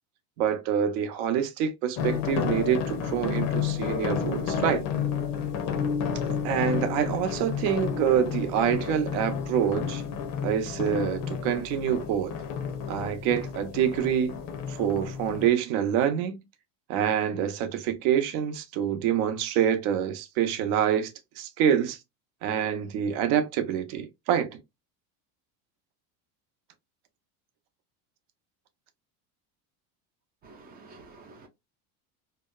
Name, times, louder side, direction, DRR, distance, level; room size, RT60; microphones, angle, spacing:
voice 1, 0.4-4.8 6.4-10.0 10.4-12.3 12.9-14.4 14.7-16.4 16.9-22.0 22.4-24.6, right 9 dB, 70° right, 0.7 m, -26 dB
sound 1, 2.0-15.5, left 7 dB, 50° left, 0.6 m, -31 dB
voice 2, 30.4-31.5, right 3 dB, 25° right, 0.3 m, -50 dB
2.8 x 2.0 x 2.2 m
supercardioid pair, 130°, 45 cm